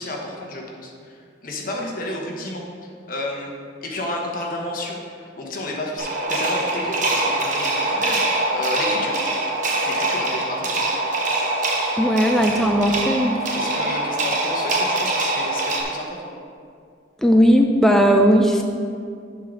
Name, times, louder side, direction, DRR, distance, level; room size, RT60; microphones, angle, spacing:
voice 1, 0.0-2.7 3.1-3.5 3.8-8.2 8.5-9.2 9.9-10.8 13.5-16.3, left 1 dB, 45° left, -1 dB, 1.1 m, -31 dB
sound 1, 6.0-15.8, right 2 dB, 40° right, 1.0 m, -23 dB
voice 2, 12.0-13.4 17.2-18.6, equal, ahead, 2 dB, 0.4 m, -17 dB
8.2 x 3.9 x 6.1 m, 2.3 s
head